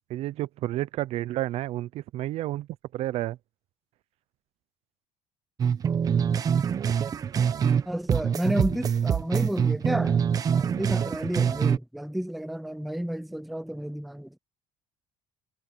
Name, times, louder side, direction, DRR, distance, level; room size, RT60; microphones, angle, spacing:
voice 1, 0.1-2.7 2.9-3.4, right 15 dB, 55° right, 0.6 m, -30 dB
sound 1, 5.6-7.8 8.1-11.8, right 7 dB, 30° right, 1.0 m, -25 dB
voice 2, 7.9-14.4, right 1 dB, ahead, 0.4 m, -31 dB
cardioid pair, 165°, 13 cm